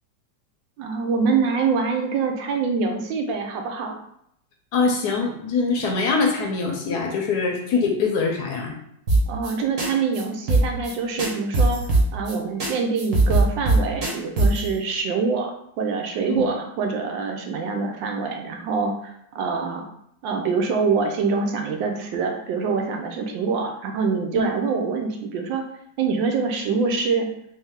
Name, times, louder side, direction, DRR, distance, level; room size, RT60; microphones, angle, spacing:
voice 1, 0.8-4.0 9.3-11.8 12.1-19.8 20.2-25.6 26.0-27.3, right 5 dB, 85° right, 3 dB, 1.3 m, -25 dB
voice 2, 4.7-8.8 16.3-16.4 24.3-24.4, left 4 dB, 70° left, 2 dB, 1.0 m, -23 dB
sound 1, 9.1-9.5 9.8-9.9 10.1-10.2 10.5-10.9 11.2-12.3 12.6-12.7 13.0-14.7, right 3 dB, 50° right, 1.2 m, -19 dB
3.2 x 3.1 x 3.5 m, 0.74 s
omnidirectional pair, 2.0 m